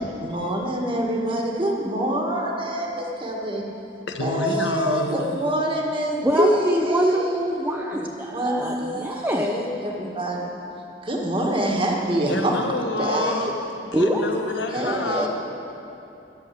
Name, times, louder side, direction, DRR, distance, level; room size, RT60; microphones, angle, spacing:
voice 1, 0.0-3.6 4.2-7.4 8.3-10.5 11.0-12.5 13.0-13.5 14.7-15.3, right 1 dB, 30° right, -1 dB, 1.5 m, -25 dB
voice 2, 4.2-5.4 12.2-15.3, left 2 dB, 70° left, 4 dB, 1.1 m, -28 dB
voice 3, 6.2-9.6 13.9-14.2, equal, 10° right, -2 dB, 0.6 m, -24 dB
13.0 x 7.0 x 8.4 m, 2.8 s
head